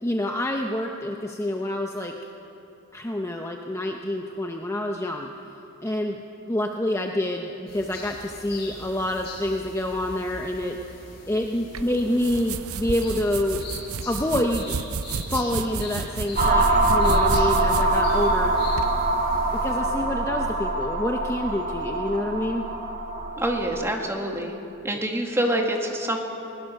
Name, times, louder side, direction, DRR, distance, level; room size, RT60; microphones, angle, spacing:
voice 1, 0.0-2.1 2.9-5.3 5.8-6.2 6.5-10.8 11.3-13.7 14.1-14.7 15.3-18.7 19.6-22.6, left 1 dB, 15° left, 2 dB, 0.8 m, -27 dB
sound 1, 7.7-19.8, left 3 dB, 50° left, 6.1 m, -42 dB
sound 2, 11.7-18.9, right 5 dB, 80° right, 0.7 m, -33 dB
sound 3, 16.4-24.0, right 2 dB, 40° right, 1.5 m, -24 dB
voice 2, 23.4-24.5 24.8-26.2, right 1 dB, 10° right, 1 dB, 2.0 m, -26 dB
20.5 x 20.0 x 6.6 m, 2.8 s
head